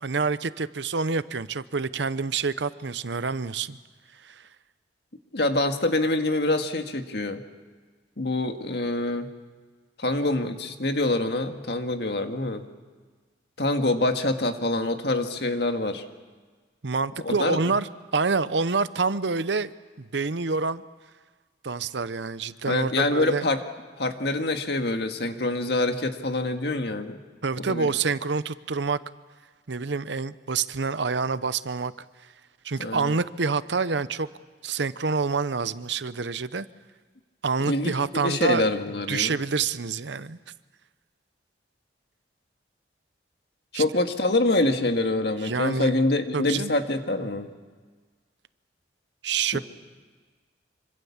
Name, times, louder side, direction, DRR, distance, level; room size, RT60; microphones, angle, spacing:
voice 1, 0.0-3.8 4.2-4.4 16.8-20.8 21.6-23.4 27.4-29.0 29.7-31.9 32.6-34.3 34.6-36.7 37.4-38.6 39.1-40.4 43.7-43.8 45.4-45.9 46.3-46.7 49.2-49.6, right 4 dB, 75° right, 15 dB, 0.8 m, -27 dB
voice 2, 5.3-7.4 8.2-9.3 10.0-12.7 13.6-16.0 17.2-17.6 22.7-23.6 24.0-27.2 27.6-27.9 32.8-33.2 37.6-39.4 43.7-47.5 49.5-49.6, left 2 dB, 60° left, 6 dB, 1.9 m, -25 dB
26.0 x 25.5 x 7.3 m, 1.5 s
head